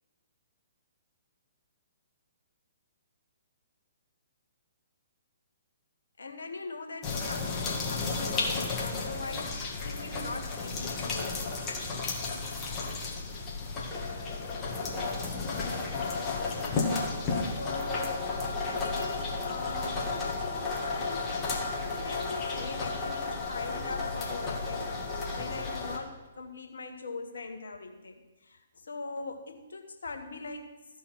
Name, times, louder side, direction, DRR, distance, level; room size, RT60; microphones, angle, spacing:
voice 1, 6.2-11.6 17.6-18.4 18.6-25.0 25.4-30.7, left 3 dB, 70° left, 5 dB, 1.3 m, -42 dB
sound 1, 7.0-26.0, left 3 dB, 25° left, 1.8 m, -33 dB
13.5 x 5.5 x 6.2 m, 1.2 s
figure-of-eight pair, 125°, 0 cm